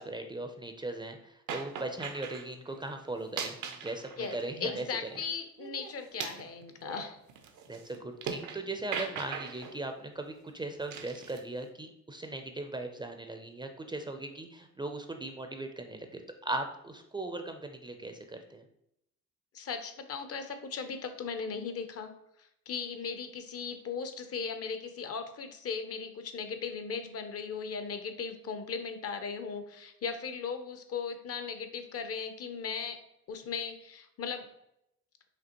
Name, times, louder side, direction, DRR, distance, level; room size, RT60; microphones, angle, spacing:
voice 1, 0.0-4.8 7.7-18.6, right 2 dB, 15° right, 5 dB, 0.4 m, -39 dB
sound 1, 1.5-2.5 3.2-5.2 5.6-8.6 8.9-9.8 10.9-11.4, right 6 dB, 80° right, 0.6 m, -40 dB
voice 2, 4.2-7.2 19.5-22.1 22.7-33.0 33.3-34.5, left 5 dB, 50° left, 8 dB, 0.6 m, -37 dB
5.1 x 2.9 x 2.8 m, 0.80 s
cardioid pair, 90°, 30 cm